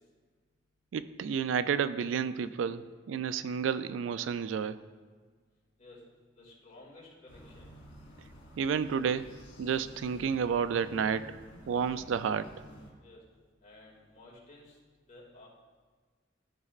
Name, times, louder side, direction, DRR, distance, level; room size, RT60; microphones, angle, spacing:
voice 1, 0.9-4.8 8.6-9.3 9.6-11.3 11.7-12.5, right 7 dB, 90° right, 14 dB, 0.3 m, -31 dB
voice 2, 6.3-7.7 13.0-13.2 13.6-14.8 15.1-15.5, left 2 dB, 40° left, -4 dB, 2.3 m, -54 dB
sound 1, 7.3-12.9, equal, 75° left, 2.0 m, -52 dB
12.5 x 5.3 x 2.4 m, 1.5 s
head